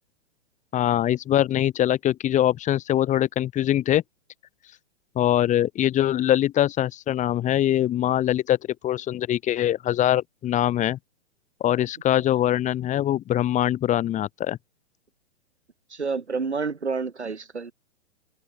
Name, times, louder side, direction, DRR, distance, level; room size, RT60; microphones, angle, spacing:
voice 1, 0.7-4.0 5.2-8.6 8.8-11.0 11.6-14.6, left 12 dB, 20° left, 4.4 m, -23 dB
voice 2, 15.9-17.7, right 4 dB, 75° right, 4.6 m, -29 dB
figure-of-eight pair, 115°, 34 cm